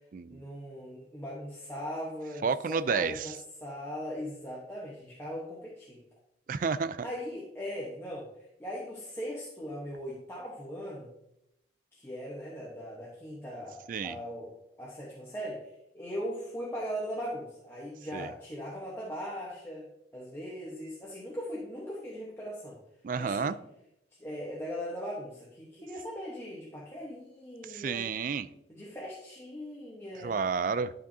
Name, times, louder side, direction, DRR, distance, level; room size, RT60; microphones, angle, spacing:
voice 1, 0.3-6.0 7.0-8.3 8.6-11.1 11.9-19.9 20.1-22.8 23.2-23.5 24.2-28.1 28.7-30.4, equal, 15° left, -5 dB, 1.0 m, -39 dB
voice 2, 2.4-3.3 6.5-7.1 13.9-14.1 18.1-18.3 23.0-23.6 27.7-28.5 30.2-30.9, right 5 dB, 45° right, 14 dB, 0.3 m, -30 dB
11.5 x 5.0 x 2.7 m, 0.82 s
head